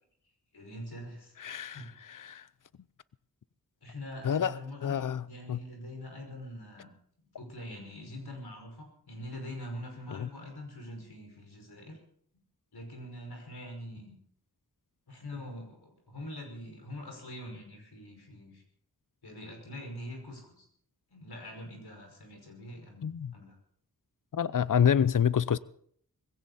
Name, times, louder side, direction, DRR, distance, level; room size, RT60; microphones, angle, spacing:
voice 1, 0.5-1.3 1.7-1.9 3.8-5.0 5.3-6.9 7.4-12.0 12.7-14.2 15.1-18.6 19.2-20.7 21.1-23.6, left 1 dB, 80° left, 5.6 m, -44 dB
voice 2, 1.4-2.5 4.2-4.6 4.8-5.6 10.1-10.3 23.0-23.3 24.3-25.6, left 8 dB, 55° left, 0.7 m, -28 dB
21.0 x 16.5 x 4.2 m
wide cardioid pair, 60°, 38 cm